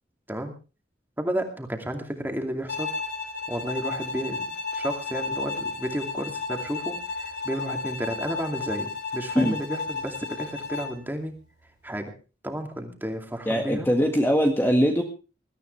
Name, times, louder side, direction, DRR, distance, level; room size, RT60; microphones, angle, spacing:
voice 1, 1.2-2.9 3.5-4.4 4.7-11.4 11.8-12.1 12.4-13.9, right 1 dB, 10° right, 4 dB, 2.5 m, -32 dB
Bowed string instrument, 2.7-11.1, left 4 dB, 65° left, 2.6 m, -33 dB
voice 2, 13.4-15.0, equal, 15° left, 2 dB, 1.7 m, -21 dB
21.0 x 13.5 x 3.3 m, 0.33 s
head